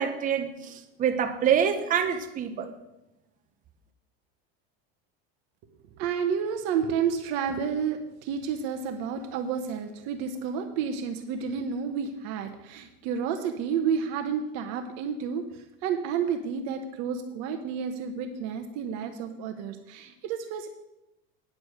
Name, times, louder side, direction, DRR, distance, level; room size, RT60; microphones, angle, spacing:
voice 1, 0.0-2.7, right 8 dB, 25° right, 6 dB, 0.9 m, -26 dB
voice 2, 5.9-20.7, right 7 dB, 55° right, 7 dB, 1.0 m, -30 dB
9.6 x 6.9 x 6.6 m, 0.93 s
supercardioid pair, 145°, 30 cm